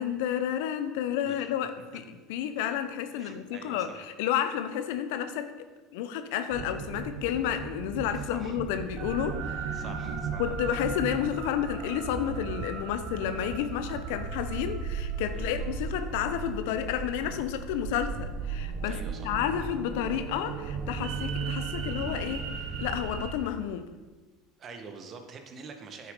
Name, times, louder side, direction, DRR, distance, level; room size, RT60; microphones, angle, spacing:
voice 1, 0.0-5.5 5.9-9.8 10.4-23.9, left 10 dB, 75° left, 10 dB, 0.8 m, -31 dB
voice 2, 3.2-4.1 8.3-8.6 9.7-10.4 15.3-15.5 18.8-19.3 24.6-26.1, right 5 dB, 40° right, 6 dB, 1.6 m, -46 dB
sound 1, 6.5-23.3, right 5 dB, 60° right, 1.2 m, -35 dB
9.5 x 7.7 x 5.4 m, 1.2 s
hypercardioid pair, 80°, 0 cm